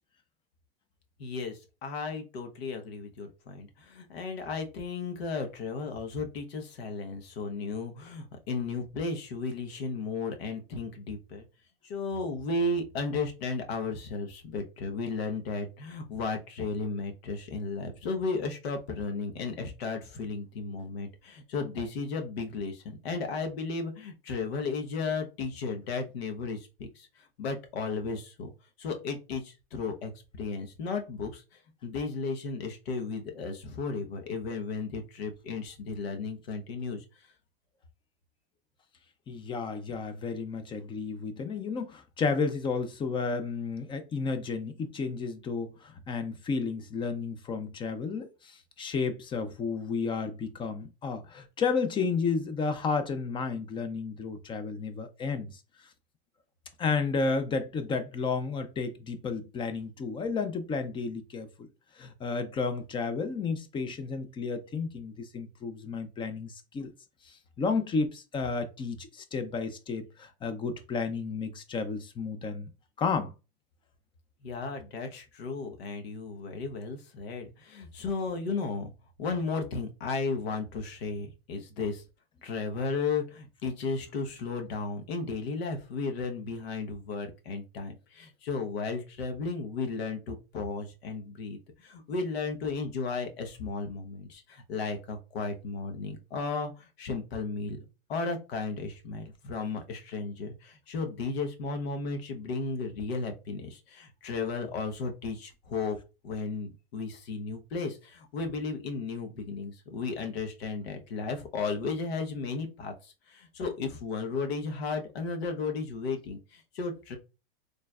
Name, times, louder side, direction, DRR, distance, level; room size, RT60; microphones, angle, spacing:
voice 1, 1.2-11.5 11.8-26.7 26.9-28.5 28.8-37.3 74.4-78.9 79.2-82.0 82.4-97.8 98.1-106.0 106.2-117.2, left 4 dB, 75° left, 1.1 m, -34 dB
voice 2, 39.3-55.6 56.8-61.5 62.0-66.9 67.3-72.7 73.0-73.3, left 4 dB, 15° left, 0.5 m, -32 dB
4.3 x 3.3 x 2.4 m
supercardioid pair, 130°, 31 cm